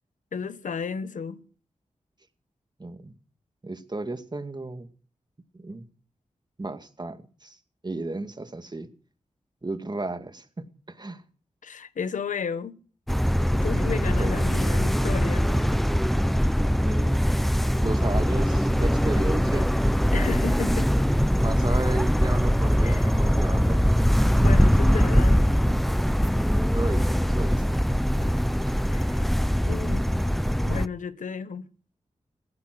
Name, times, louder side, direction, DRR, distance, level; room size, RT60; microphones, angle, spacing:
voice 1, 0.3-1.4 11.6-12.8 13.5-15.5 20.1-20.9 22.8-23.1 24.4-25.4 28.9-29.2 29.7-30.1 30.7-31.6, left 6 dB, 85° left, 1.1 m, -33 dB
voice 2, 2.8-3.1 3.6-4.9 5.5-5.9 6.6-7.6 7.8-8.9 9.6-10.5 10.9-11.2 14.2-14.5 15.5-15.8 16.8-17.2 17.7-19.7 21.4-23.8 26.7-27.6 28.2-28.3 28.6-28.8, right 2 dB, 35° right, 2.1 m, -34 dB
sound 1, 13.1-30.9, equal, ahead, 0.7 m, -22 dB
16.0 x 14.5 x 6.1 m
cardioid pair, 50°, 13 cm